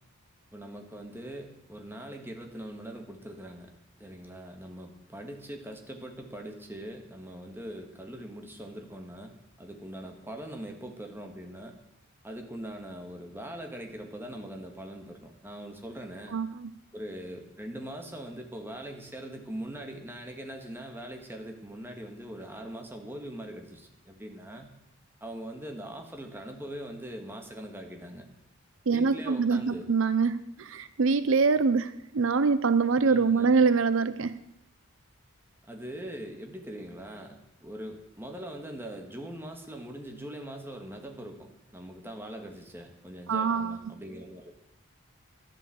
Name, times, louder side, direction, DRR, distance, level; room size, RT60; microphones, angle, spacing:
voice 1, 0.5-3.7 4.0-9.3 9.6-11.7 12.2-16.4 16.9-24.7 25.2-28.3 28.9-29.8 33.1-33.5 35.7-44.5, right 1 dB, 10° right, 3 dB, 1.7 m, -42 dB
voice 2, 16.3-16.7 28.9-34.4 43.3-44.0, right 4 dB, 65° right, 13 dB, 0.6 m, -25 dB
12.5 x 10.5 x 7.7 m, 0.83 s
head